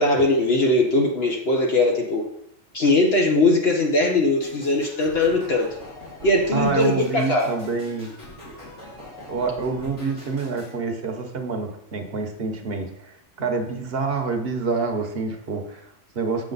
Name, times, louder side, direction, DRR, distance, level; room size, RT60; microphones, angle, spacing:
voice 1, 0.0-2.2 2.7-5.7 6.2-7.5, left 2 dB, 55° left, 0 dB, 1.3 m, -20 dB
sound 1, 4.4-10.8, left 1 dB, 70° left, 2.6 m, -43 dB
voice 2, 6.5-8.1 9.0-16.5, right 4 dB, 55° right, 5 dB, 1.2 m, -27 dB
7.5 x 6.8 x 4.0 m, 0.74 s
omnidirectional pair, 1.3 m